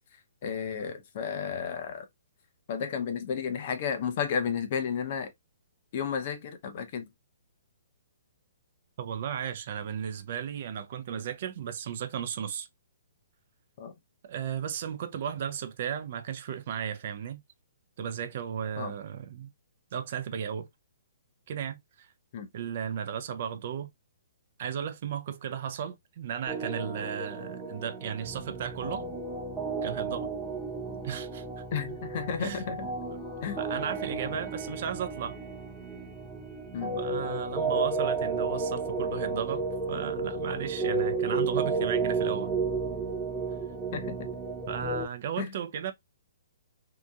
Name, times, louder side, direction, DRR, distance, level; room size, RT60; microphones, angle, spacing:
voice 1, 0.4-2.1 2.7-5.3 5.9-7.1 13.8-13.9 18.8-18.9 22.3-22.5 31.7-32.9 33.4-33.6 36.7-37.0 43.9-44.3 45.4-45.5, left 7 dB, 50° left, 0.7 m, -32 dB
voice 2, 9.0-12.7 14.2-17.4 18.0-19.5 19.9-20.7 21.5-22.1 22.5-23.9 24.6-29.0 29.8-30.3 31.0-31.6 32.4-32.6 33.6-35.4 37.0-42.5 44.7-45.9, right 8 dB, 50° right, 0.5 m, -35 dB
sound 1, 26.5-45.1, right 4 dB, 5° right, 0.8 m, -32 dB
2.8 x 2.5 x 2.3 m
hypercardioid pair, 140°, 0 cm